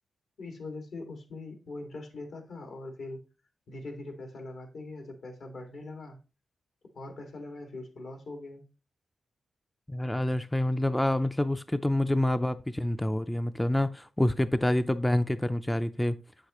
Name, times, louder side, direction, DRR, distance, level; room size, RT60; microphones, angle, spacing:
voice 1, 0.4-3.2 3.7-6.2 6.9-8.6, left 2 dB, 75° left, 2.1 m, -42 dB
voice 2, 9.9-16.2, left 1 dB, 10° left, 0.4 m, -27 dB
7.8 x 6.6 x 3.0 m
cardioid pair, 60°, 0 cm